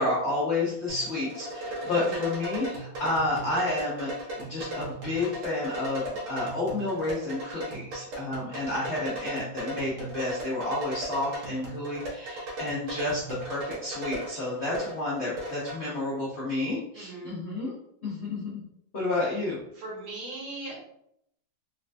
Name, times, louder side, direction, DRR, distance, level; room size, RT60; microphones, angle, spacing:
voice 1, 0.0-4.1 4.4-17.7 18.0-18.6 18.9-19.6, left 2 dB, 75° left, -6 dB, 0.6 m, -30 dB
sound 1, 0.9-15.8, right 1 dB, 85° right, 1.9 m, -37 dB
voice 2, 1.8-2.3 17.0-17.4 19.2-19.3 19.8-20.8, right 2 dB, 65° right, -4 dB, 1.7 m, -39 dB
4.2 x 2.2 x 2.5 m, 0.74 s
omnidirectional pair, 2.3 m